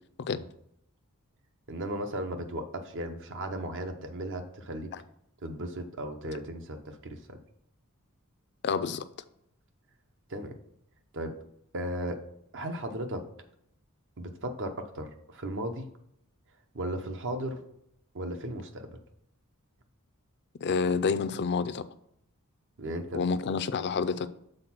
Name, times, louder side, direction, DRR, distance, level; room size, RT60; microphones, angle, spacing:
voice 1, 1.7-4.9 5.4-7.4 10.3-10.5 11.1-11.4 11.7-12.2 12.5-13.3 14.2-15.9 16.7-17.6 18.1-18.9 22.8-23.2, right 1 dB, 60° right, 0.9 m, -36 dB
voice 2, 8.6-9.0 20.6-21.8 23.1-24.3, left 5 dB, 50° left, 0.4 m, -28 dB
6.5 x 4.2 x 5.9 m
head